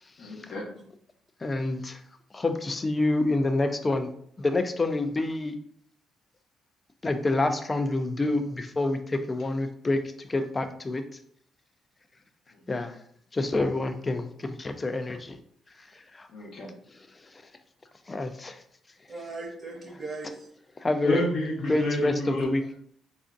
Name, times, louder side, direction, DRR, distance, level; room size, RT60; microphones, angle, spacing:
voice 1, 0.2-0.7 12.5-12.8 16.3-16.7 21.0-22.5, left 1 dB, 70° left, -1 dB, 0.9 m, -30 dB
voice 2, 1.4-2.0 2.3-4.1 4.4-5.5 7.0-11.0 12.7-12.9 13.3-15.4 16.1-16.3 18.1-18.6 20.8-21.2 21.7-22.7, left 2 dB, 25° left, 8 dB, 0.4 m, -27 dB
voice 3, 19.1-20.7 21.6-21.9 22.4-22.7, right 3 dB, 35° right, -2 dB, 0.8 m, -40 dB
4.3 x 2.5 x 2.4 m, 0.63 s
cardioid pair, 90°, 0 cm